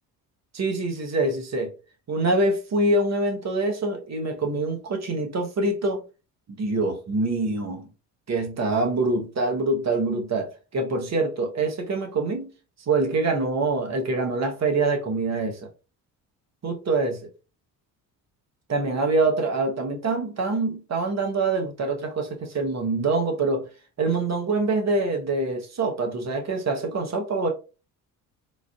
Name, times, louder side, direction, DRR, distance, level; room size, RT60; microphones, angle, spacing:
voice 1, 0.5-1.7 2.1-6.0 6.5-7.9 8.3-12.5 12.9-15.7 16.6-17.3 18.7-23.7 24.0-27.5, right 3 dB, 35° right, 1.0 m, -25 dB
4.0 x 2.5 x 2.3 m
hypercardioid pair, 50°, 48 cm